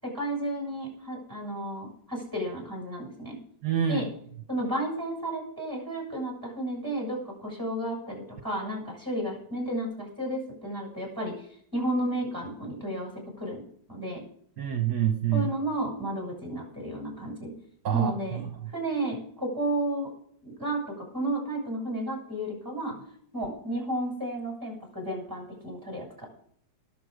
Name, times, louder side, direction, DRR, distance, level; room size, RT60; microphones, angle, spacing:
voice 1, 0.0-3.4 3.9-4.1 4.5-11.4 11.7-13.1 13.4-13.6 13.9-14.2 15.3-17.5 17.9-18.4 18.7-20.1 20.4-23.0 23.3-26.3, right 1 dB, 10° right, 1 dB, 7.0 m, -32 dB
voice 2, 3.6-4.1 14.6-15.5 17.8-18.4, right 9 dB, 65° right, 5 dB, 1.7 m, -26 dB
19.5 x 7.7 x 5.1 m, 0.62 s
omnidirectional pair, 1.9 m